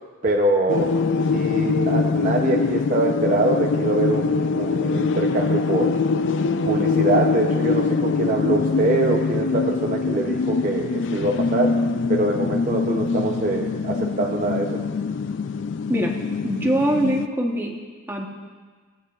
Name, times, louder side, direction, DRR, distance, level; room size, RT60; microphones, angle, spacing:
voice 1, 0.2-1.0 1.3-6.0 6.6-11.8 12.1-14.8, right 2 dB, 40° right, 0 dB, 0.6 m, -24 dB
sound 1, 0.7-17.3, left 4 dB, 60° left, 0.4 m, -23 dB
voice 2, 16.4-17.7 18.1-18.3, right 1 dB, 10° right, 0 dB, 1.0 m, -22 dB
19.0 x 8.1 x 2.4 m, 1.5 s
head